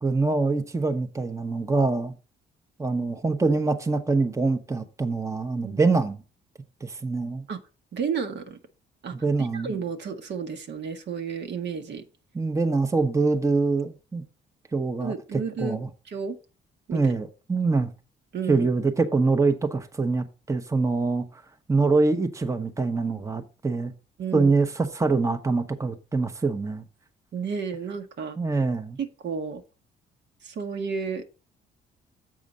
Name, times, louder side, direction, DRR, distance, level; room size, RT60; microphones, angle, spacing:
voice 1, 0.0-2.1 2.8-6.2 6.8-7.4 9.1-9.7 12.3-14.2 14.7-15.1 15.6-15.9 16.9-17.9 18.5-21.3 21.7-23.9 24.3-26.8 28.4-29.0, right 3 dB, 15° right, 0.8 m, -24 dB
voice 2, 5.6-6.0 7.5-7.6 7.9-8.6 9.0-12.0 15.0-15.8 16.1-16.4 16.9-17.1 18.3-18.7 24.2-24.5 27.3-28.6 29.0-29.6 30.4-31.2, right 6 dB, 60° right, 1.2 m, -32 dB
7.5 x 4.9 x 5.2 m
cardioid pair, 90°, 20 cm